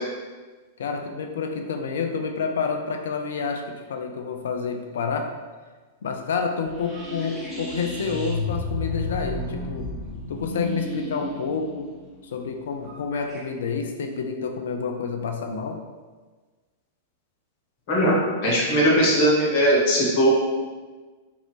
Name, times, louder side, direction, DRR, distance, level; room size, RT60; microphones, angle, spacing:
voice 1, 0.8-5.3 6.0-10.0 10.3-11.9 12.3-15.8, left 5 dB, 65° left, 4 dB, 0.3 m, -29 dB
sound 1, 6.6-13.4, left 2 dB, ahead, 1.1 m, -32 dB
voice 2, 17.9-20.3, equal, 45° left, -4 dB, 1.0 m, -19 dB
2.8 x 2.6 x 3.1 m, 1.4 s
figure-of-eight pair, 95°, 0 cm